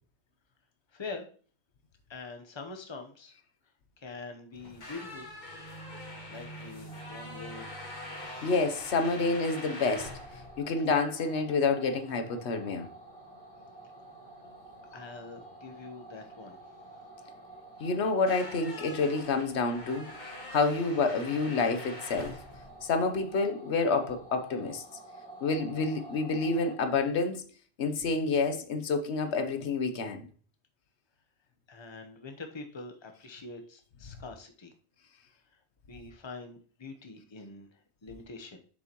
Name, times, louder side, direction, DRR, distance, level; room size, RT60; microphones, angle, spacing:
voice 1, 0.9-1.3 2.1-3.3 4.0-5.3 6.3-7.7 14.9-16.6 31.7-34.7 35.9-38.6, left 3 dB, 25° left, 1.0 m, -44 dB
sound 1, 4.5-23.4, left 1 dB, 45° left, 1.6 m, -46 dB
sound 2, 6.9-26.8, right 2 dB, 5° left, 2.8 m, -50 dB
voice 2, 8.4-10.2 10.6-12.9 17.8-20.1 20.5-22.4 22.8-24.8 25.4-27.5 27.8-30.3, left 4 dB, 85° left, 1.2 m, -28 dB
7.1 x 6.6 x 3.0 m
omnidirectional pair, 1.1 m